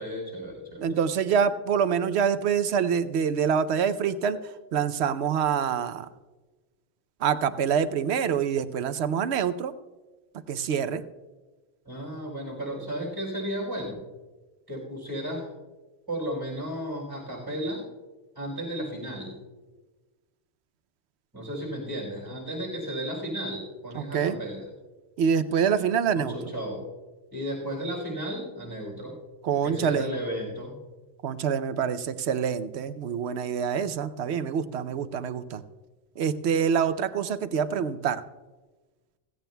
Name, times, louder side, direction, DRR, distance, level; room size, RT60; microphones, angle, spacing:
voice 1, 0.0-0.9 11.8-14.0 14.7-15.5 16.1-17.9 18.3-19.4 21.3-24.6 26.1-26.9 27.3-29.2 29.6-30.7, equal, 20° right, -3 dB, 4.6 m, -34 dB
voice 2, 0.8-6.1 7.2-9.7 10.3-11.0 23.9-24.4 25.2-26.5 29.4-30.1 31.2-35.6 36.2-38.2, right 7 dB, 85° right, 12 dB, 0.9 m, -26 dB
16.0 x 16.0 x 2.2 m, 1.2 s
omnidirectional pair, 1.1 m